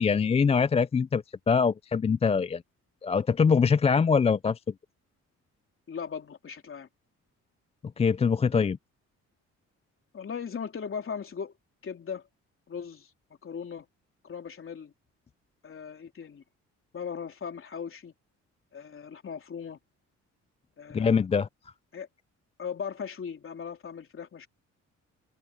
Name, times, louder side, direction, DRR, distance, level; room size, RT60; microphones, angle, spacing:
voice 1, 0.0-2.6 3.0-4.6 8.0-8.8 20.9-21.5, left 5 dB, 20° left, 0.3 m, -23 dB
voice 2, 5.9-6.9 10.1-11.5 11.8-12.2 12.7-13.1 13.4-13.9 14.2-14.9 15.6-16.4 16.9-18.1 18.7-19.8 20.8-21.2 21.9-22.1 22.6-24.5, left 6 dB, 45° left, 3.7 m, -38 dB
open air
cardioid pair, 90°, 30 cm